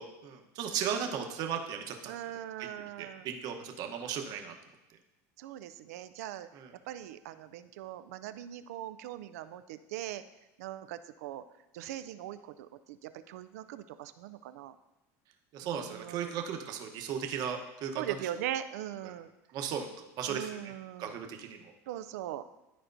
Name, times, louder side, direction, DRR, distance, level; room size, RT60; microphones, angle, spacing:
voice 1, 0.0-2.1 2.6-2.7 3.0-4.6 6.6-6.7 15.5-18.1 19.5-19.9 20.2-20.7 21.0-21.7, right 7 dB, 55° right, 4 dB, 1.0 m, -36 dB
voice 2, 2.0-3.3 5.4-6.5 6.9-10.2 10.6-11.4 11.7-14.8 15.6-16.3 17.9-19.3 20.3-21.2 21.9-22.5, right 12 dB, 85° right, 11 dB, 0.4 m, -40 dB
12.0 x 4.3 x 2.7 m, 0.96 s
supercardioid pair, 115°, 8 cm